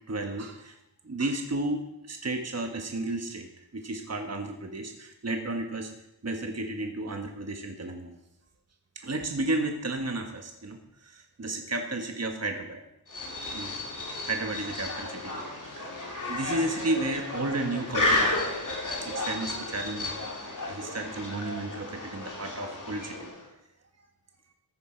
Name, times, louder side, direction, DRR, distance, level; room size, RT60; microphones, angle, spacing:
voice 1, 0.1-0.8 1.0-3.5 3.7-5.9 6.2-8.2 8.9-12.8 13.5-13.7 14.2-15.9 16.3-18.4 19.0-23.3, right 2 dB, 40° right, 4 dB, 1.2 m, -33 dB
sound 1, 13.1-23.5, left 2 dB, 50° left, 3.0 m, -32 dB
14.5 x 9.6 x 4.4 m, 0.86 s
wide cardioid pair, 75°, 41 cm